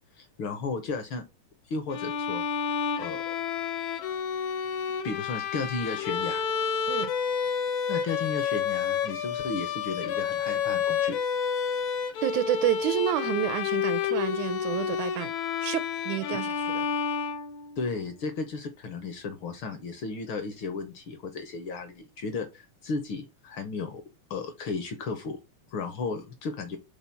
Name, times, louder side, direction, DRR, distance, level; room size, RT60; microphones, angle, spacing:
voice 1, 0.1-1.2 1.7-2.4 3.0-3.3 5.0-6.5 7.9-11.2 17.8-24.0 24.3-25.4 25.7-26.8, left 4 dB, 65° left, 1.3 m, -34 dB
Bowed string instrument, 1.9-17.9, left 7 dB, 90° left, 1.0 m, -30 dB
voice 2, 12.2-15.3 15.6-16.9, right 12 dB, 80° right, 1.9 m, -29 dB
6.0 x 3.9 x 5.3 m
omnidirectional pair, 3.4 m